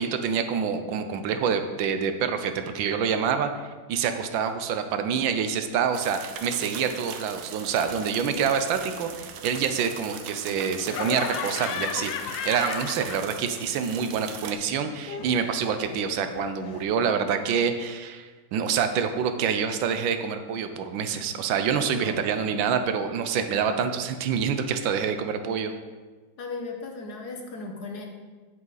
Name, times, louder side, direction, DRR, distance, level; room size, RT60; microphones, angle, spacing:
voice 1, 0.0-25.7, right 7 dB, 80° right, 8 dB, 1.4 m, -27 dB
sound 1, 5.9-14.5, right 7 dB, 65° right, 0.9 m, -40 dB
Laughter, 10.9-13.6 13.9-16.8, left 7 dB, 75° left, 1.3 m, -35 dB
voice 2, 21.9-22.3 26.4-28.1, left 3 dB, 60° left, 2 dB, 1.4 m, -36 dB
8.3 x 7.7 x 4.0 m, 1.4 s
omnidirectional pair, 2.1 m